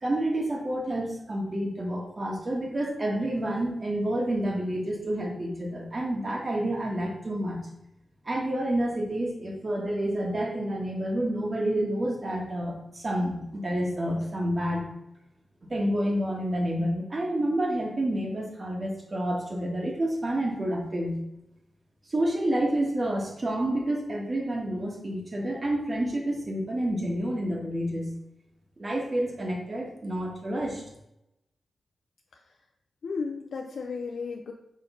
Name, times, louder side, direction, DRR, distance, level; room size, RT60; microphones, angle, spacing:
voice 1, 0.0-7.6 8.2-14.9 15.7-21.2 22.1-28.1 28.8-30.8, right 1 dB, 45° right, -1 dB, 1.6 m, -29 dB
voice 2, 33.0-34.5, left 4 dB, 80° left, 1 dB, 0.4 m, -34 dB
5.3 x 3.2 x 5.5 m, 0.86 s
cardioid pair, 60°, 0 cm